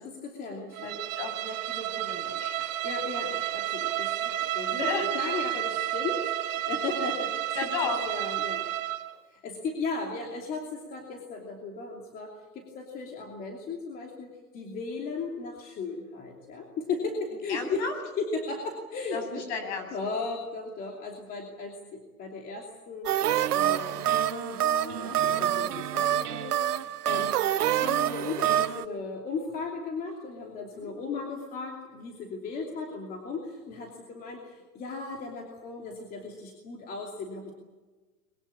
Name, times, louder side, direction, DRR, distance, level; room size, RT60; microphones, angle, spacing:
voice 1, 0.0-1.0 2.8-4.8 5.1-7.4 8.0-8.7 9.3-17.8 18.2-19.4 19.9-23.2 23.5-27.4 27.7-37.5, left 4 dB, 20° left, 1 dB, 2.8 m, -36 dB
Bowed string instrument, 0.7-9.1, right 13 dB, 55° right, 3.2 m, -31 dB
voice 2, 0.8-2.5 4.7-5.2 7.5-8.0 17.5-17.9 19.1-19.9 30.7-30.9, left 4 dB, 45° left, 5 dB, 8.0 m, -34 dB
sound 1, 23.1-28.9, right 11 dB, 80° right, 1.2 m, -26 dB
22.5 x 22.5 x 8.6 m, 1.2 s
hypercardioid pair, 160°, 45 cm